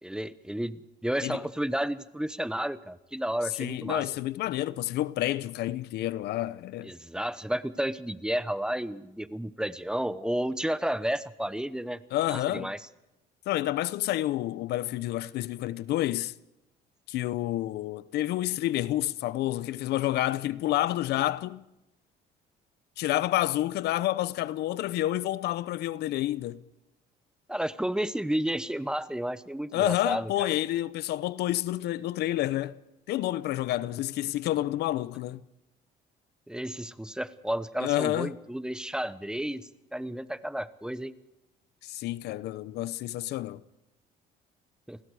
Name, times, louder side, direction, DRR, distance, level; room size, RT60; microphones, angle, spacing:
voice 1, 0.0-4.0 6.8-12.0 12.3-12.8 27.5-30.5 36.5-39.6 39.9-41.1 44.9-45.0, right 1 dB, 5° right, 1.0 m, -32 dB
voice 2, 3.6-6.9 12.1-12.7 13.5-16.3 17.1-21.6 23.0-26.6 29.7-32.8 33.1-35.4 37.8-38.3 41.8-43.6, left 14 dB, 75° left, 0.8 m, -29 dB
30.0 x 20.5 x 4.9 m
cardioid pair, 110°, 17 cm